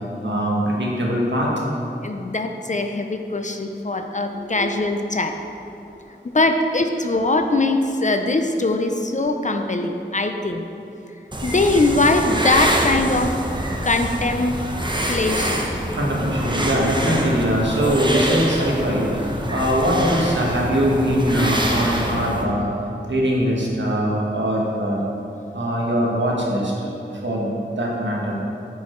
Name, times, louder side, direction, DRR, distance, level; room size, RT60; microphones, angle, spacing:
voice 1, 0.2-1.5 4.3-4.4 15.9-22.7 23.1-25.0 25.5-26.7 27.2-28.4, equal, 65° right, -3 dB, 1.3 m, -21 dB
voice 2, 2.0-5.4 6.3-10.6 11.4-13.4 13.8-14.6 15.1-15.7, left 2 dB, 40° left, 5 dB, 0.4 m, -21 dB
sound 1, 11.3-22.4, right 1 dB, 25° right, 0.8 m, -25 dB
7.1 x 4.8 x 4.4 m, 2.8 s
wide cardioid pair, 60°, 20 cm